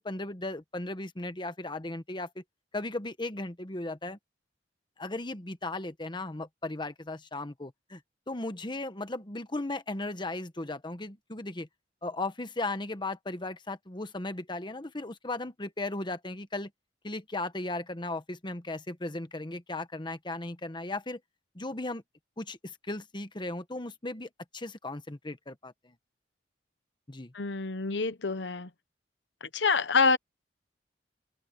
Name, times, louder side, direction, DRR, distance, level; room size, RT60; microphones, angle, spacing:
voice 1, 0.0-2.4 2.7-4.2 5.0-8.0 8.3-11.7 12.0-16.7 17.0-21.2 21.5-22.0 22.4-25.9 27.1-27.3, left 2 dB, 25° left, 1.2 m, -36 dB
voice 2, 27.3-28.7 29.4-30.2, left 4 dB, 75° left, 1.0 m, -26 dB
open air
head